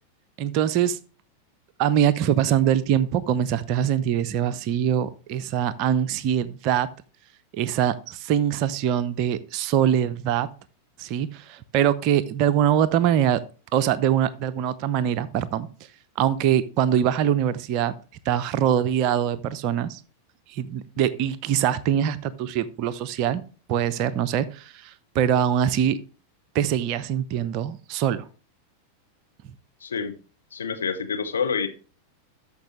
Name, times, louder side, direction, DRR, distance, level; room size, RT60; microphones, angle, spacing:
voice 1, 0.4-1.0 1.8-6.9 7.5-10.5 11.0-13.4 13.7-15.7 16.2-17.9 18.3-20.0 20.5-23.4 23.7-26.0 26.5-28.3, right 10 dB, 40° right, 0.7 m, -23 dB
voice 2, 29.8-30.1 30.5-31.7, left 6 dB, 70° left, 1.1 m, -27 dB
13.0 x 5.3 x 3.1 m
figure-of-eight pair, 90°, 0 cm